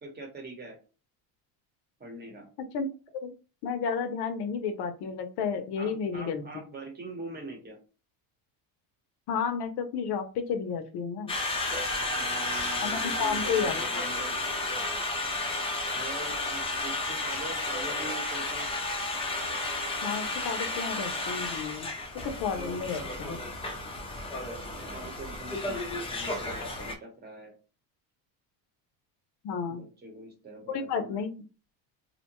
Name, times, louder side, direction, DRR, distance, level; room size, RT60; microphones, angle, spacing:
voice 1, 0.0-0.8 2.0-2.5 5.8-7.8 12.0-14.5 15.9-18.7 22.5-23.2 24.7-27.5 29.7-31.2, right 2 dB, 20° right, 3 dB, 0.9 m, -43 dB
voice 2, 3.6-6.4 9.3-11.3 12.8-13.8 20.0-21.9 22.4-23.4 29.4-29.8 30.7-31.3, left 6 dB, 60° left, 7 dB, 0.6 m, -31 dB
Conversation, 11.3-26.9, left 2 dB, 15° left, 0.4 m, -32 dB
2.6 x 2.1 x 2.9 m, 0.35 s
cardioid pair, 120°, 44 cm